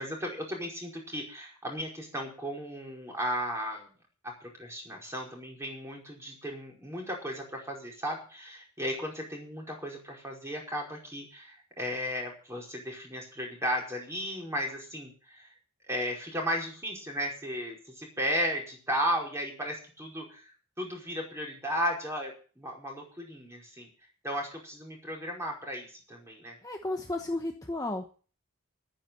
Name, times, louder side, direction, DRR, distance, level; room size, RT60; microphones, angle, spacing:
voice 1, 0.0-3.9 4.2-15.5 15.9-20.4 20.8-23.9 24.2-26.5, equal, 10° right, -1 dB, 5.1 m, -35 dB
voice 2, 26.6-28.1, left 2 dB, 15° left, 3 dB, 1.1 m, -33 dB
11.5 x 10.0 x 7.6 m, 0.39 s
head